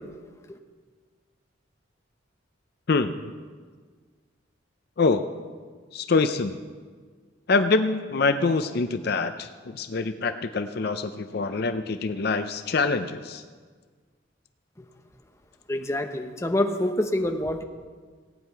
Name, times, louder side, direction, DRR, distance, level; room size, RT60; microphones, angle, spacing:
voice 1, 2.9-3.3 5.0-5.2 5.9-6.6 7.5-13.4, left 4 dB, 55° left, 9 dB, 0.5 m, -25 dB
voice 2, 15.7-17.6, left 1 dB, 15° left, 4 dB, 0.8 m, -26 dB
17.5 x 9.3 x 4.6 m, 1.5 s
head